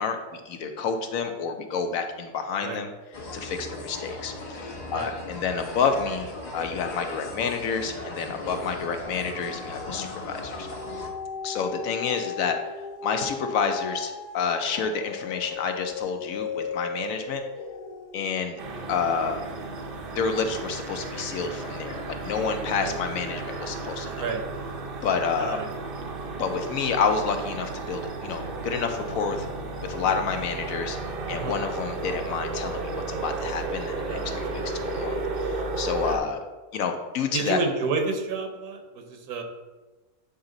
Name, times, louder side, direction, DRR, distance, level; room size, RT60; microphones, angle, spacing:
voice 1, 0.0-2.9 3.3-10.7 11.4-12.6 13.0-17.4 18.1-18.5 18.9-19.4 20.1-24.3 25.0-25.6 26.4-29.5 29.8-31.0 31.3-36.4 36.7-37.6, left 5 dB, 70° left, 6 dB, 0.9 m, -29 dB
sound 1, 3.1-11.1, left 2 dB, 35° left, 0.9 m, -38 dB
sound 2, 8.4-20.7 21.2-21.3, left 5 dB, 90° left, 1.2 m, -38 dB
sound 3, 18.6-36.2, right 3 dB, 50° right, 0.7 m, -33 dB
voice 2, 25.4-25.7 31.3-31.6 34.1-34.7 36.0-36.2 37.3-39.4, right 4 dB, 80° right, 4 dB, 1.4 m, -30 dB
7.9 x 4.1 x 3.9 m, 1.2 s
omnidirectional pair, 1.6 m